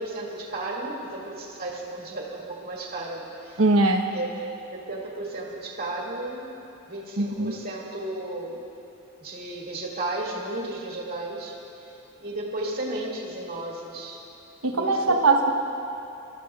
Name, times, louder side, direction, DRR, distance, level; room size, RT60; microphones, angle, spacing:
voice 1, 0.0-3.6 4.1-4.3 4.7-6.5 6.9-8.6 9.2-11.5 11.8-11.9 12.2-14.2 14.7-15.2, right 2 dB, 45° right, -3 dB, 2.2 m, -34 dB
voice 2, 3.6-4.1 7.2-7.6 14.6-15.5, right 3 dB, 70° right, 2 dB, 1.1 m, -21 dB
27.0 x 13.0 x 2.4 m, 2.9 s
head